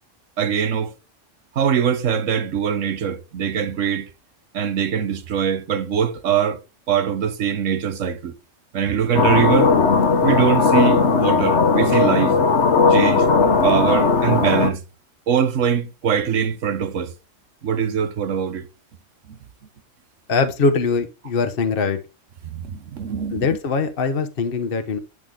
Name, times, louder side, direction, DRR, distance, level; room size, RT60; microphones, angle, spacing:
voice 1, 0.4-0.9 1.5-4.1 4.5-6.6 6.9-8.3 8.7-9.7 10.2-12.3 12.9-13.3 13.6-14.8 15.3-17.1 17.6-18.7 19.3-19.4 22.4-23.5, right 8 dB, 80° right, 1.4 m, -22 dB
sound 1, 9.1-14.7, left 4 dB, 65° left, 1.4 m, -17 dB
voice 2, 20.3-22.0 23.3-25.0, left 4 dB, 50° left, 1.2 m, -22 dB
11.0 x 6.1 x 3.8 m
omnidirectional pair, 1.3 m